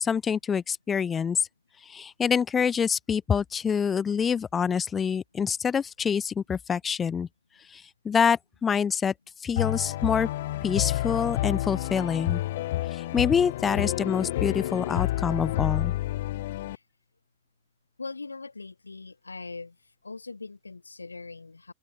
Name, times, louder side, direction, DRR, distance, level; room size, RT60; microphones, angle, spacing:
voice 1, 0.0-1.5 1.9-7.3 7.7-9.1 9.4-10.3 10.6-12.4 12.9-15.9, left 7 dB, 20° left, 0.6 m, -26 dB
sound 1, 9.6-16.8, left 15 dB, 55° left, 2.3 m, -29 dB
voice 2, 18.0-19.8 20.0-21.7, left 3 dB, 80° left, 7.5 m, -40 dB
open air
figure-of-eight pair, 90°, 0 cm